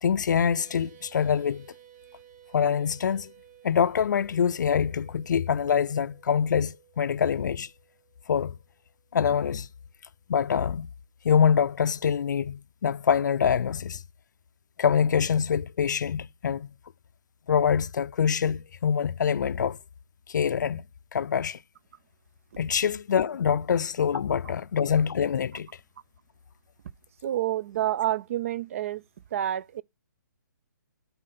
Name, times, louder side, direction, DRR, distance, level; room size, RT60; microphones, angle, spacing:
voice 1, 0.0-1.7 2.5-3.3 3.6-7.7 8.3-8.6 9.1-9.7 10.3-10.9 11.2-14.0 14.8-16.7 17.5-19.8 20.3-20.8 21.1-21.6 22.6-25.7, left 7 dB, 65° left, 0.4 m, -25 dB
sound 1, 0.6-9.2, right 11 dB, 65° right, 2.1 m, -56 dB
voice 2, 27.2-29.0 29.3-29.8, right 12 dB, 45° right, 0.4 m, -28 dB
11.0 x 4.4 x 3.9 m
hypercardioid pair, 150°, 11 cm